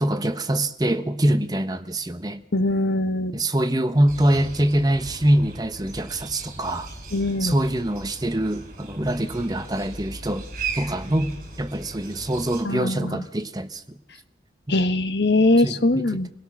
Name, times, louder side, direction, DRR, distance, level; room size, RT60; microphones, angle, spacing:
voice 1, 0.0-2.4 3.3-6.9 7.4-10.4 10.8-13.8 14.7-14.8 15.6-16.2, right 1 dB, 20° right, 1.1 m, -24 dB
voice 2, 2.5-3.4 7.1-7.5 12.6-13.2 14.7-16.3, left 2 dB, 75° left, 1.2 m, -21 dB
sound 1, 4.1-12.6, right 3 dB, 45° right, 4.9 m, -37 dB
26.5 x 17.5 x 6.3 m
head